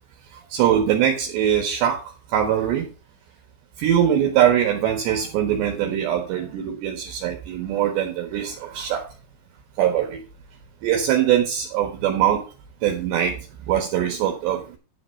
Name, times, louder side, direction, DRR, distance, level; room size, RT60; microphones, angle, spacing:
voice 1, 0.5-2.0 2.3-2.9 3.8-9.1 9.8-10.2 10.8-12.4 12.8-14.8, right 10 dB, 70° right, 3 dB, 3.4 m, -22 dB
10.5 x 5.9 x 5.8 m, 0.33 s
omnidirectional pair, 5.6 m